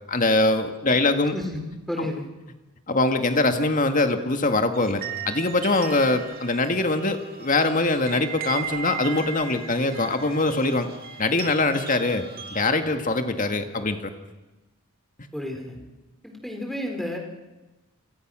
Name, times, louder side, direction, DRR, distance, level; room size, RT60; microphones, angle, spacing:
voice 1, 0.1-1.3 2.9-10.9 11.2-12.2 12.5-14.1, left 2 dB, 40° left, 7 dB, 2.0 m, -23 dB
voice 2, 1.3-2.3 15.3-15.8 16.2-17.2, left 1 dB, ahead, 3 dB, 3.9 m, -31 dB
sound 1, 4.7-12.6, right 6 dB, 45° right, 3.0 m, -37 dB
28.5 x 26.5 x 6.3 m, 1.1 s
head